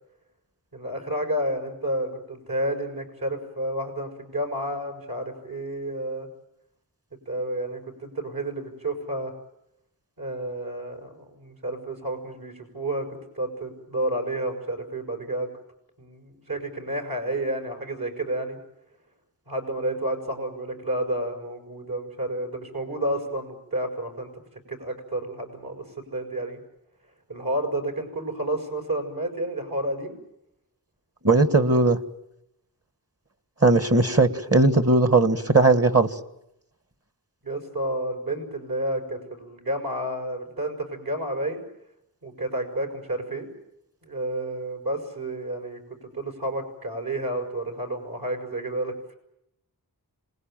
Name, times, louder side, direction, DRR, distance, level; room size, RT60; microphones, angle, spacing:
voice 1, 0.7-6.3 7.3-9.3 10.2-15.5 16.0-18.6 19.5-24.3 24.7-25.8 26.1-26.6 27.3-30.2 37.4-41.6 42.2-43.5 44.0-49.1, right 1 dB, 65° right, 4 dB, 6.3 m, -30 dB
voice 2, 31.2-32.0 33.6-36.1, right 3 dB, 40° right, 11 dB, 1.8 m, -18 dB
27.0 x 20.5 x 9.1 m, 0.81 s
wide cardioid pair, 55°, 38 cm